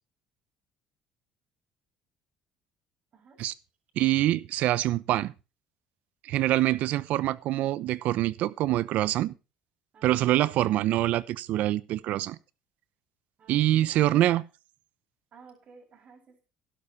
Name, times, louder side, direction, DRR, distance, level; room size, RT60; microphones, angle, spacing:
voice 1, 3.1-3.4 13.4-14.2 15.3-16.4, right 5 dB, 50° right, 7.6 m, -55 dB
voice 2, 4.0-5.3 6.2-9.3 10.0-12.4 13.5-14.4, right 14 dB, 70° right, 0.8 m, -25 dB
12.0 x 11.5 x 4.3 m
supercardioid pair, 85°, 3 cm